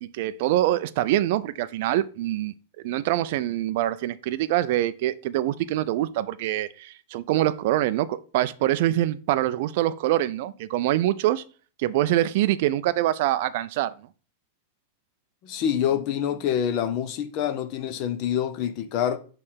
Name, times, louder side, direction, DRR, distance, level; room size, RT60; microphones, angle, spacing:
voice 1, 0.0-2.5 2.8-11.4 11.8-13.9, right 14 dB, 45° right, 0.4 m, -24 dB
voice 2, 15.4-19.2, left 9 dB, 35° left, 0.7 m, -26 dB
6.4 x 3.3 x 5.7 m
supercardioid pair, 175°, 0 cm